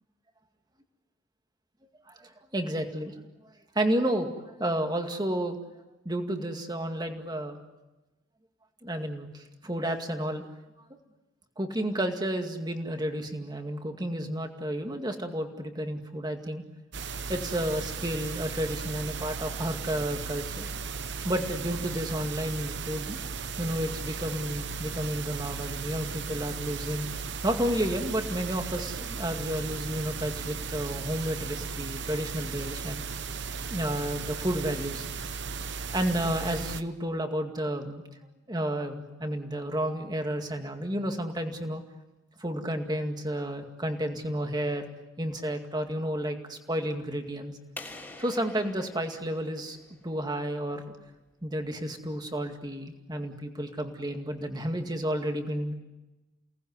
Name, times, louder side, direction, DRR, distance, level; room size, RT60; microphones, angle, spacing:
voice 1, 2.1-3.1 3.8-5.6 6.1-7.6 8.8-10.5 11.6-16.6 17.3-20.7 21.2-23.2 23.6-27.1 27.4-33.0 33.7-35.1 35.9-38.0 38.5-41.8 42.4-44.9 45.2-47.5 48.2-49.8 50.0-50.9 51.4-55.7, right 1 dB, 20° right, 5 dB, 2.1 m, -31 dB
sound 1, 16.9-36.8, right 5 dB, 55° right, 1.0 m, -36 dB
sound 2, 47.8-50.4, left 2 dB, 10° left, 3.3 m, -46 dB
29.5 x 19.0 x 9.7 m, 1.1 s
head